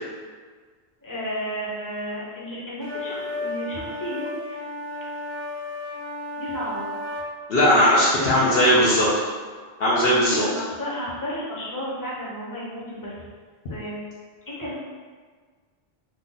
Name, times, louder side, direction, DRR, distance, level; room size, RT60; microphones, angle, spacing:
voice 1, 1.0-4.6 6.4-6.9 8.2-8.8 10.0-13.3 13.7-14.0 14.5-14.8, equal, 20° left, -7 dB, 0.7 m, -33 dB
sound 1, 2.8-7.3, left 1 dB, 65° right, 0.9 m, -33 dB
voice 2, 7.5-9.1 9.8-10.4, equal, 70° left, -8 dB, 0.9 m, -18 dB
2.8 x 2.2 x 3.8 m, 1.6 s
omnidirectional pair, 1.0 m